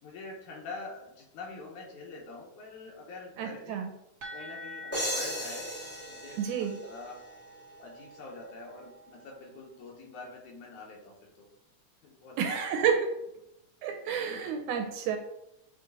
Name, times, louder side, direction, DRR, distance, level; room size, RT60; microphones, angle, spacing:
voice 1, 0.0-3.8 4.3-7.2 7.8-11.5 12.0-12.9 14.3-14.4, left 3 dB, 70° left, -1 dB, 2.5 m, -45 dB
voice 2, 3.4-3.9 6.4-6.8 12.4-13.1 13.8-15.2, right 7 dB, 80° right, 6 dB, 2.0 m, -30 dB
sound 1, 4.2-9.8, equal, 45° right, 1.4 m, -48 dB
sound 2, 4.9-7.6, equal, 5° left, 0.7 m, -36 dB
8.8 x 3.2 x 3.9 m, 0.84 s
omnidirectional pair, 3.8 m